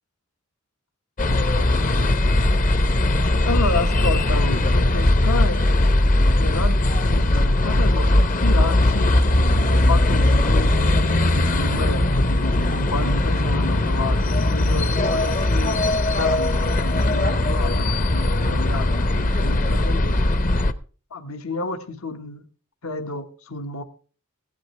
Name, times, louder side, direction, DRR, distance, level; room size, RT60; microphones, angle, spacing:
sound 1, 1.2-20.7, left 1 dB, 40° left, 0.8 m, -19 dB
voice 1, 3.2-6.0 6.4-8.1 8.4-9.1 9.7-14.2 14.5-15.8 16.1-20.1 21.1-22.4 22.8-23.8, left 2 dB, 75° left, 8 dB, 1.3 m, -30 dB
16.0 x 11.5 x 3.2 m, 0.38 s
head